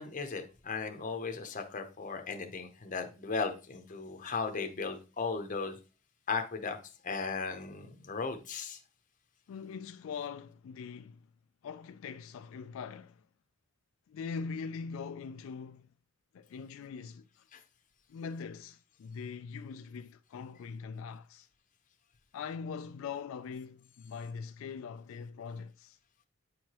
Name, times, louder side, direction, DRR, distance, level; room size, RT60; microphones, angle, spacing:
voice 1, 0.0-5.8 6.3-6.8 7.0-8.8 17.5-17.6, left 4 dB, 40° left, 0.7 m, -36 dB
voice 2, 9.5-11.3 11.6-13.2 14.1-15.9 16.3-17.2 18.1-21.5 22.3-26.0, left 5 dB, 70° left, 0.3 m, -42 dB
8.4 x 4.7 x 2.9 m
head